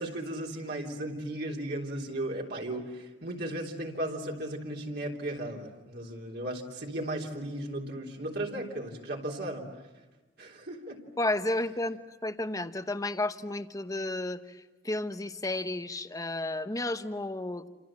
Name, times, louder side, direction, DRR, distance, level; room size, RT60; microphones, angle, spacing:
voice 1, 0.0-9.7 10.4-11.0, right 1 dB, 60° right, -1 dB, 3.5 m, -36 dB
voice 2, 11.2-17.7, left 2 dB, 20° left, 10 dB, 1.0 m, -32 dB
28.5 x 27.5 x 7.5 m, 1.1 s
head